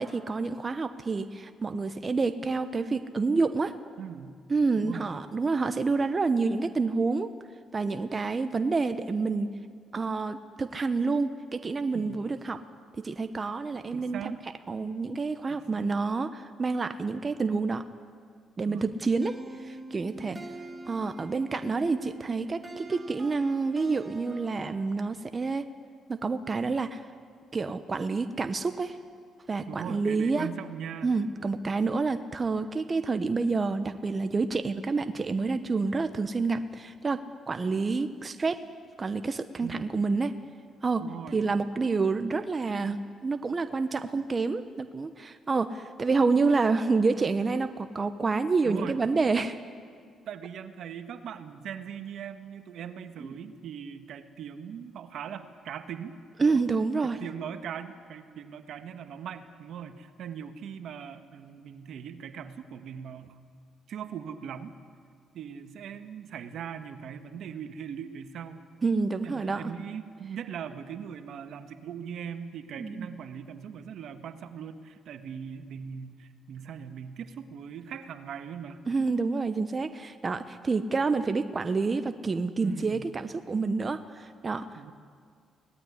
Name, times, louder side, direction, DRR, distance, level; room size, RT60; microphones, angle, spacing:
voice 1, 0.0-3.7 4.5-7.3 7.7-9.5 9.9-12.6 13.0-14.3 14.7-17.8 18.6-19.3 19.6-20.4 20.9-25.7 26.1-27.0 27.5-29.0 29.5-30.5 31.0-38.6 39.0-40.3 40.8-41.0 41.3-49.6 53.2-53.3 56.4-57.2 68.8-69.7 72.8-73.1 78.9-84.9, right 4 dB, 35° right, 9 dB, 1.0 m, -28 dB
voice 2, 4.0-4.4 4.7-5.1 11.9-12.2 13.9-14.4 15.5-15.9 18.6-18.9 20.2-20.5 29.7-31.1 39.6-40.0 41.0-41.5 48.6-49.0 50.3-56.2 56.4-56.6 57.0-63.4 63.9-64.7 65.3-68.6 69.2-78.8 82.6-83.1 84.8-84.9, right 8 dB, 70° right, 9 dB, 1.6 m, -40 dB
sound 1, 19.2-25.0, right 2 dB, 15° right, 3.3 m, -44 dB
23.5 x 18.5 x 9.9 m, 2.1 s
cardioid pair, 80°, 0 cm